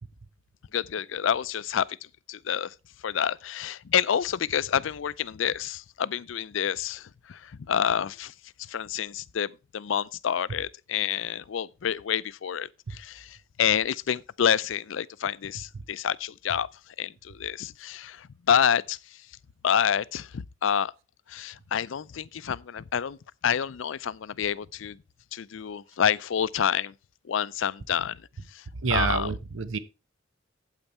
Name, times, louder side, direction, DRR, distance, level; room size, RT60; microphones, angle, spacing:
voice 1, 0.7-1.8 2.3-2.7 3.0-8.3 8.7-16.7 17.0-19.0 19.6-20.9 21.3-23.2 23.4-25.0 25.3-26.9 27.3-28.2 28.5-28.6 28.9-29.3, left 8 dB, 70° left, 0.4 m, -28 dB
voice 2, 28.8-29.8, right 4 dB, 80° right, 0.8 m, -27 dB
8.8 x 8.2 x 4.3 m
head